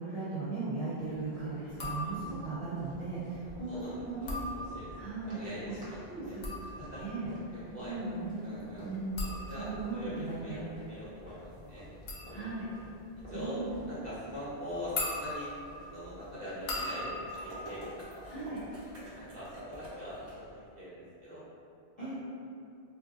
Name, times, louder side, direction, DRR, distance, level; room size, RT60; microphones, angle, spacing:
voice 1, 0.0-4.4 4.9-5.4 6.1-6.4 7.0-7.3 7.8-8.5 8.8-9.3 9.5-10.6 12.3-12.6 13.3-13.8 18.3-18.6 22.0-22.1, right 3 dB, 40° left, -11 dB, 0.7 m, -37 dB
sound 1, 0.9-20.7, equal, 10° right, 0.7 m, -54 dB
sound 2, 1.7-2.5 4.1-5.2 6.1-18.9 19.1-19.7, left 2 dB, 70° left, 0.8 m, -41 dB
voice 2, 3.4-6.4 6.8-7.0 7.5-8.0 8.4-8.9 9.4-11.9 12.3-12.5 13.3-15.5 15.9-17.8 18.3-18.5 19.1-21.4 22.0-22.1, equal, 45° right, -11 dB, 0.8 m, -43 dB
sound 3, 17.3-20.3, equal, 70° right, 1.2 m, -46 dB
2.5 x 2.0 x 3.9 m, 2.5 s
omnidirectional pair, 1.1 m